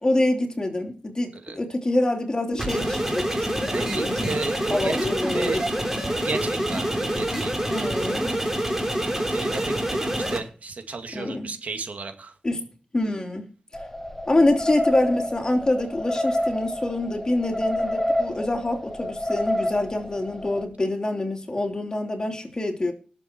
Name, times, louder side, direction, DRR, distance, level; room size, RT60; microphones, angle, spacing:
voice 1, 0.0-3.5 3.8-4.3 4.7-5.6 7.7-8.4 11.1-11.5 12.4-12.6 12.9-13.5 14.3-22.9, left 2 dB, 30° left, 3.0 m, -25 dB
sound 1, 2.6-10.4, right 1 dB, 15° right, 3.7 m, -26 dB
voice 2, 3.7-5.0 5.3-5.6 6.2-7.9 9.0-12.3, right 4 dB, 75° right, 2.1 m, -34 dB
sound 2, 13.7-20.6, left 1 dB, 10° left, 1.8 m, -28 dB
19.5 x 7.5 x 4.6 m
wide cardioid pair, 95°, 3 cm